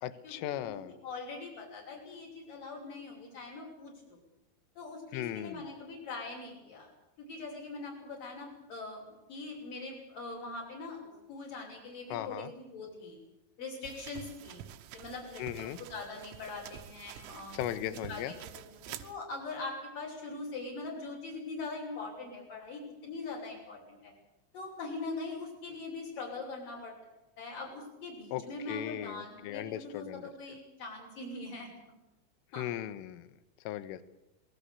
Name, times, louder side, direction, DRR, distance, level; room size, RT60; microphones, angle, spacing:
voice 1, 0.0-0.9 5.1-5.6 12.1-12.5 15.4-15.8 17.5-18.3 28.3-28.4 28.7-30.3 32.6-33.3 33.7-34.0, left 12 dB, 75° left, 12 dB, 3.8 m, -37 dB
voice 2, 0.6-4.2 4.8-6.9 7.2-13.2 13.6-14.6 14.9-24.1 24.5-26.9 27.4-32.0 32.5-32.8, left 3 dB, 40° left, 0 dB, 7.8 m, -42 dB
sound 1, 13.8-19.1, right 11 dB, 80° right, 3.7 m, -48 dB
27.5 x 21.5 x 6.9 m, 0.94 s
omnidirectional pair, 6.0 m